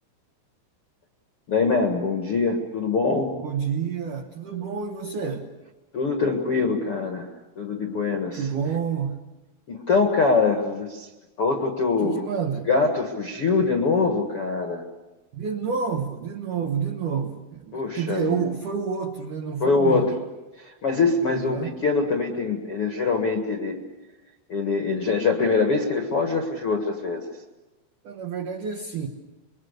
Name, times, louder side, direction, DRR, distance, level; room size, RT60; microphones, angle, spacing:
voice 1, 1.5-3.3 5.9-7.3 7.6-8.5 9.7-11.1 11.4-12.2 12.7-14.8 17.7-18.5 19.6-20.1 20.6-23.8 24.5-27.2, left 4 dB, 60° left, 3 dB, 1.5 m, -23 dB
voice 2, 3.4-5.5 8.4-9.2 12.0-12.7 15.3-20.1 21.3-21.8 28.0-29.1, right 6 dB, 80° right, 4 dB, 1.8 m, -29 dB
27.0 x 23.0 x 6.7 m, 1.1 s
omnidirectional pair, 5.6 m